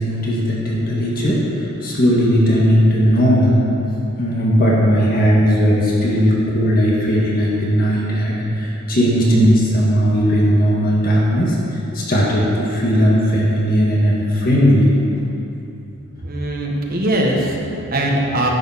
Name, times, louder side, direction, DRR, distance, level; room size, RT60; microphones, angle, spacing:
voice 1, 0.0-3.6 4.2-14.9, equal, 45° left, -5 dB, 1.6 m, -17 dB
voice 2, 16.2-18.5, right 1 dB, 45° right, -1 dB, 1.4 m, -21 dB
10.5 x 7.0 x 5.8 m, 2.7 s
head